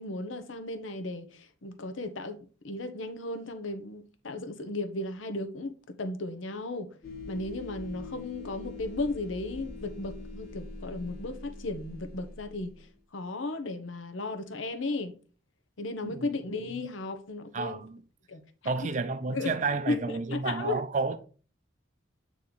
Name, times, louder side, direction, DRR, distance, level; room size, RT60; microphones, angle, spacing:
voice 1, 0.0-2.4 2.6-6.9 7.3-12.7 13.1-15.1 15.8-17.8 18.3-18.9 19.3-20.8, left 2 dB, 85° left, 0.8 m, -35 dB
sound 1, 7.0-12.9, left 3 dB, 50° left, 1.0 m, -43 dB
voice 2, 17.5-18.0 18.7-21.2, right 4 dB, 40° right, 0.4 m, -31 dB
8.4 x 3.1 x 4.0 m
head